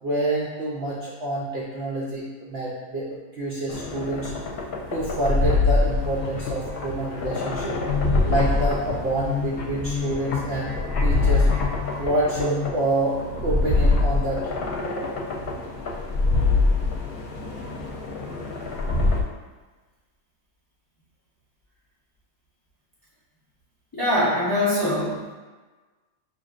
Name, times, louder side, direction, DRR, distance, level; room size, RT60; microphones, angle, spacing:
voice 1, 0.0-4.3 4.9-7.7 8.2-10.7 11.0-11.5 12.0-14.5, right 2 dB, 75° right, -5 dB, 0.5 m, -27 dB
sound 1, 3.7-19.2, left 3 dB, 70° left, 1.0 m, -25 dB
sound 2, 6.0-12.7, left 7 dB, 85° left, 0.5 m, -31 dB
voice 2, 23.9-25.3, left 1 dB, 30° left, -8 dB, 0.4 m, -23 dB
6.0 x 2.6 x 2.5 m, 1.3 s
omnidirectional pair, 1.7 m